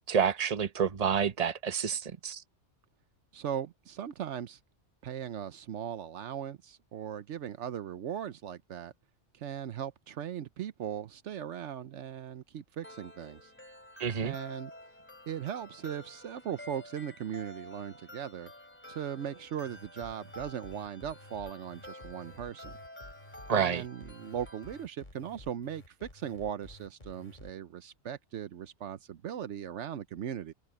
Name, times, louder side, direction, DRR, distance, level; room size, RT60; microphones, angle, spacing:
voice 1, 0.1-2.4 14.0-14.3 23.5-23.8, right 7 dB, 35° right, 1.0 m, -28 dB
voice 2, 3.3-4.6 5.0-8.9 9.3-13.5 14.2-14.7 15.3-18.5 18.9-22.7 23.5-30.5, right 9 dB, 75° right, 1.0 m, -38 dB
sound 1, 12.8-24.8, left 1 dB, 10° left, 3.3 m, -50 dB
sound 2, 19.6-27.5, left 1 dB, 40° left, 3.6 m, -52 dB
omnidirectional pair, 1.2 m